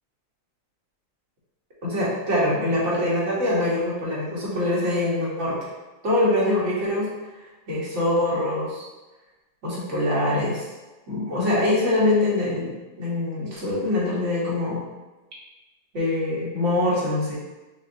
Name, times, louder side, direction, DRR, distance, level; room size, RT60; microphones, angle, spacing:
voice 1, 1.8-5.6 6.0-7.1 7.7-8.8 9.6-10.6 11.1-14.8 15.9-17.3, left 1 dB, 60° right, -7 dB, 1.6 m, -24 dB
5.6 x 2.6 x 2.7 m, 1.1 s
omnidirectional pair, 1.4 m